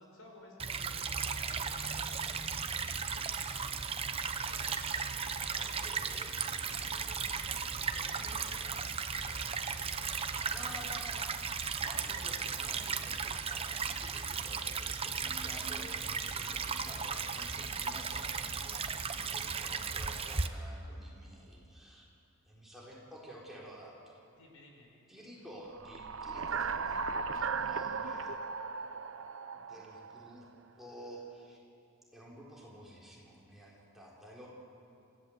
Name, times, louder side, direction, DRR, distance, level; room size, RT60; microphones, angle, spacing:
voice 1, 0.0-3.8 4.5-6.1 6.7-8.7 9.1-11.2 11.9-12.6 24.3-24.9, left 1 dB, 85° left, 0 dB, 5.2 m, -56 dB
Stream / Trickle dribble, 0.6-20.5, right 5 dB, 25° right, 0.8 m, -36 dB
voice 2, 5.4-6.8 8.1-8.8 10.5-11.3 11.8-22.1 22.5-23.9 25.1-28.3 29.5-30.5 30.8-31.6 32.1-34.5, equal, ahead, -5 dB, 4.0 m, -51 dB
sound 1, 25.7-30.4, right 5 dB, 65° right, 0.7 m, -37 dB
26.5 x 15.0 x 8.0 m, 2.7 s
head